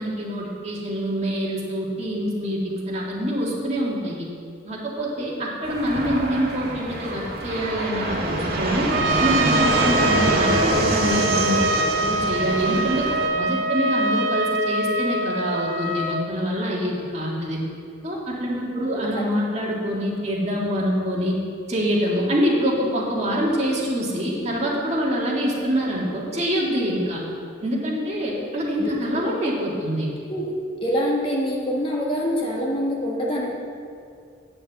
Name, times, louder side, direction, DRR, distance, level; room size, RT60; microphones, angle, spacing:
voice 1, 0.0-4.3 4.6-8.9 9.2-17.6 18.0-21.4 21.7-27.2 27.6-30.1, equal, 35° right, -4 dB, 2.1 m, -25 dB
Fixed-wing aircraft airplane, 5.6-13.3, right 1 dB, 55° right, 1.7 m, -25 dB
Trumpet, 8.9-16.2, right 2 dB, 85° right, 0.7 m, -24 dB
voice 2, 18.7-19.2 28.4-28.5 28.8-29.0 30.3-30.5 30.8-33.5, equal, 30° left, -2 dB, 1.3 m, -25 dB
9.1 x 6.9 x 7.5 m, 2.3 s
head